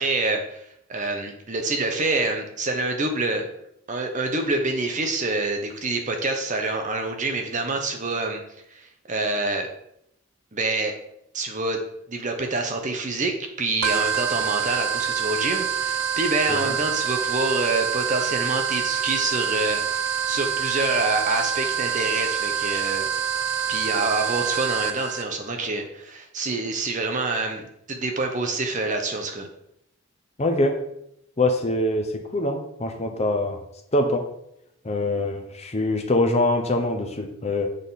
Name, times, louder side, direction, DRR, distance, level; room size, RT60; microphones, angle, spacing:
voice 1, 0.0-3.5 3.9-8.4 8.7-8.8 9.1-9.7 10.5-10.9 11.3-11.8 12.1-23.1 23.7-27.6 27.9-29.5, right 3 dB, 35° right, 4 dB, 0.8 m, -26 dB
sound 1, 13.8-25.2, right 7 dB, 65° right, 0.4 m, -26 dB
voice 2, 30.4-30.8 31.4-33.6 33.9-34.2 34.8-37.7, left 2 dB, 30° left, 4 dB, 0.7 m, -24 dB
6.5 x 3.6 x 4.1 m, 0.76 s
head